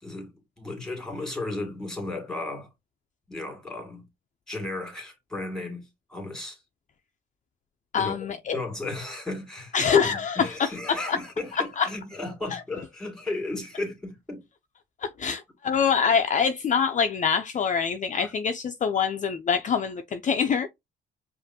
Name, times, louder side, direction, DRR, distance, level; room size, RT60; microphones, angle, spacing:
voice 1, 0.0-2.7 3.3-4.0 4.5-6.6 8.0-8.2 8.5-14.4, left 2 dB, 5° left, 2.1 m, -35 dB
voice 2, 7.9-8.6 9.7-11.2 11.5-11.9 12.5-12.6 15.0-20.7, left 6 dB, 40° left, 0.5 m, -25 dB
5.0 x 2.5 x 2.7 m
cardioid pair, 90°, 20 cm